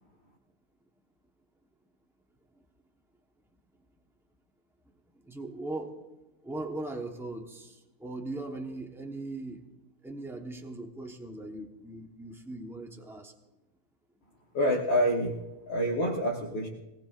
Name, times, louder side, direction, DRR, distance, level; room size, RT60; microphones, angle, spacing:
voice 1, 5.2-6.1 6.4-9.6 10.0-13.3, right 2 dB, 5° right, 2 dB, 0.5 m, -39 dB
voice 2, 14.5-16.7, equal, 60° left, -2 dB, 2.0 m, -27 dB
22.0 x 18.5 x 2.5 m, 1.0 s
omnidirectional pair, 2.4 m